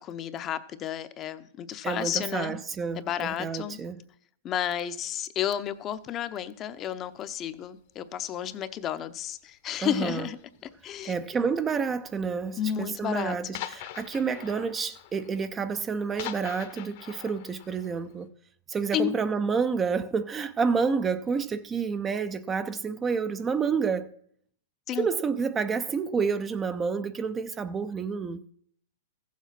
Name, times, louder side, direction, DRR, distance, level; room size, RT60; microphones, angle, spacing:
voice 1, 0.0-2.6 3.0-3.8 4.4-10.4 10.8-11.1 12.6-13.4 18.9-19.1 24.9-25.1, left 10 dB, 30° left, 0.7 m, -32 dB
voice 2, 1.8-4.0 9.8-10.3 11.0-18.3 18.7-24.1 25.0-28.4, right 5 dB, 20° right, 0.5 m, -29 dB
sound 1, 5.9-6.1 6.9-7.3 7.6-8.0 8.4-8.6 9.1-9.2 9.4-9.5 10.3-10.8 11.6-11.7 12.1-12.2 12.5-12.6 12.9-13.0 13.5-18.2, left 13 dB, 55° left, 1.1 m, -43 dB
14.5 x 7.4 x 5.8 m
hypercardioid pair, 135°, 0 cm